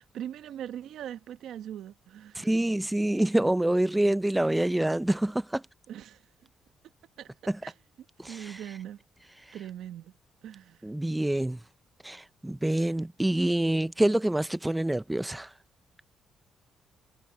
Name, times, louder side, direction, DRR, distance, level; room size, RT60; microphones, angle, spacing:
voice 1, 0.0-2.5 5.9-6.3 7.2-7.3 7.6-7.7 8.2-9.0 9.5-10.1 10.4-10.9 13.4-13.5, right 10 dB, 75° right, 1.1 m, -41 dB
voice 2, 2.3-5.6 7.5-7.6 8.2-8.6 9.4-9.6 10.8-11.6 12.0-15.5, right 1 dB, 10° right, 0.4 m, -26 dB
cardioid pair, 90°, 0 cm